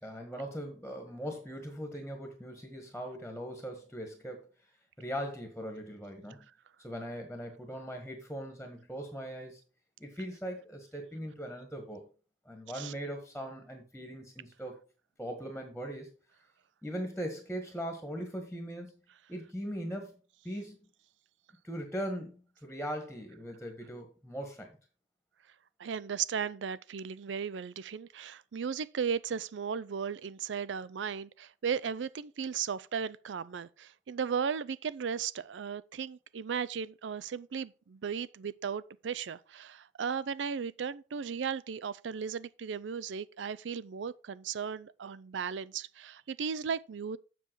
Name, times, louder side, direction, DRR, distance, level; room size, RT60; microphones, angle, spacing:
voice 1, 0.0-4.7 5.0-6.5 6.8-9.6 10.0-12.1 12.4-14.8 15.2-16.1 16.8-18.9 19.3-20.2 20.4-20.8 21.6-24.8, equal, 5° left, 1.5 m, -40 dB
voice 2, 25.8-47.2, right 6 dB, 85° right, 0.4 m, -36 dB
7.6 x 6.8 x 4.6 m
head